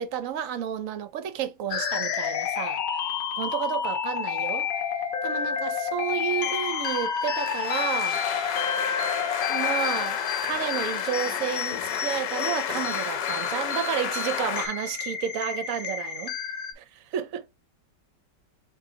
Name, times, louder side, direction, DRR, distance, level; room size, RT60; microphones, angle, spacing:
voice 1, 0.0-2.8 3.4-4.7 5.2-8.6 9.5-16.4 16.8-17.5, right 9 dB, 65° right, 0.9 m, -31 dB
sound 1, 1.7-16.7, left 7 dB, 65° left, 1.0 m, -30 dB
sound 2, 7.2-14.7, left 9 dB, 80° left, 1.4 m, -31 dB
4.6 x 2.6 x 3.7 m
omnidirectional pair, 1.9 m